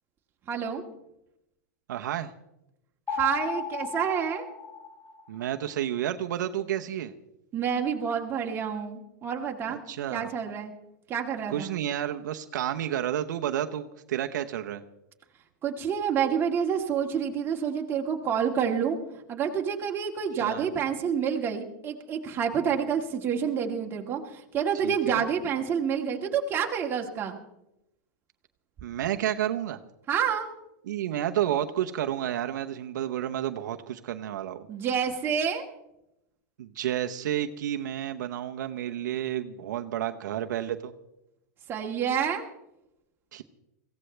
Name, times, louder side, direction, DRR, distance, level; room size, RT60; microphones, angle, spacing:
voice 1, 0.5-0.8 3.1-4.5 7.5-9.8 10.1-10.7 11.1-11.7 15.6-19.0 19.3-27.4 30.1-30.5 34.7-35.6 41.7-42.4, right 7 dB, 20° right, 1 dB, 1.9 m, -28 dB
voice 2, 1.9-2.3 5.3-7.1 9.7-10.3 11.5-14.8 20.4-20.7 24.8-25.2 28.8-29.8 30.9-34.7 36.6-40.9 43.3-43.4, right 11 dB, 80° right, 6 dB, 0.9 m, -31 dB
sound 1, 3.1-5.5, left 6 dB, 15° left, 1.2 m, -35 dB
22.5 x 16.0 x 3.3 m, 0.88 s
supercardioid pair, 145°, 10 cm